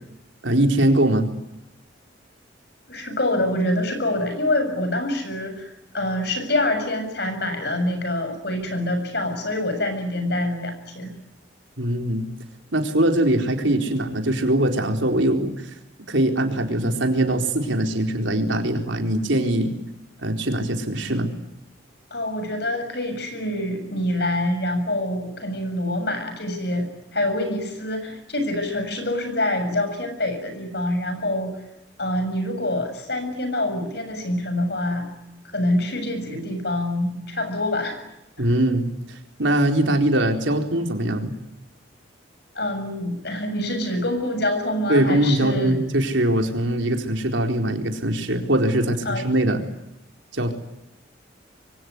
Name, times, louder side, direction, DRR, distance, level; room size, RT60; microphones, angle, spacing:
voice 1, 0.4-1.3 11.8-12.3 12.7-15.8 16.1-19.7 20.2-21.3 38.4-41.3 44.9-49.6 50.3-50.5, right 1 dB, 75° right, 4 dB, 4.3 m, -22 dB
voice 2, 2.9-11.1 22.1-31.5 32.0-35.1 35.5-38.0 42.6-45.8 49.1-49.3, left 1 dB, 55° left, 8 dB, 7.1 m, -26 dB
26.0 x 24.0 x 9.6 m, 0.87 s
head